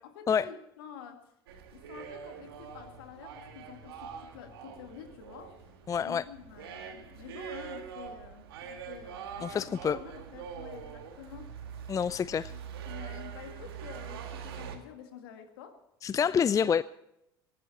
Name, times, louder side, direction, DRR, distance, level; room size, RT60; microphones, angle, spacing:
voice 1, 0.0-1.3 1.7-5.6 6.0-11.5 12.5-12.6 12.9-15.8, left 8 dB, 70° left, 6 dB, 2.1 m, -48 dB
sound 1, 1.5-14.8, right 7 dB, 75° right, 1.9 m, -44 dB
sound 2, 2.0-3.1 3.3-9.0 9.3-11.1 11.3-14.4, left 1 dB, 45° right, 4.0 m, -60 dB
voice 2, 5.9-6.2 9.4-10.0 11.9-12.5 16.0-16.8, left 7 dB, 25° left, 18 dB, 0.4 m, -27 dB
19.5 x 14.5 x 4.2 m, 0.83 s
figure-of-eight pair, 65°, 12 cm